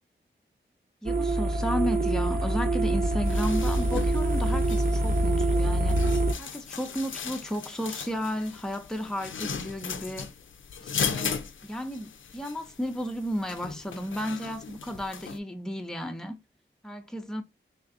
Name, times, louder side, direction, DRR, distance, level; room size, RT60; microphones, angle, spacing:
voice 1, 1.0-6.1 6.4-10.3 10.8-16.4 16.8-17.4, equal, 5° left, 0.6 m, -33 dB
sound 1, 1.1-6.3, right 1 dB, 50° right, 0.9 m, -25 dB
sound 2, 3.3-15.4, left 6 dB, 90° left, 0.5 m, -37 dB
3.8 x 3.4 x 2.5 m
wide cardioid pair, 115°, 20 cm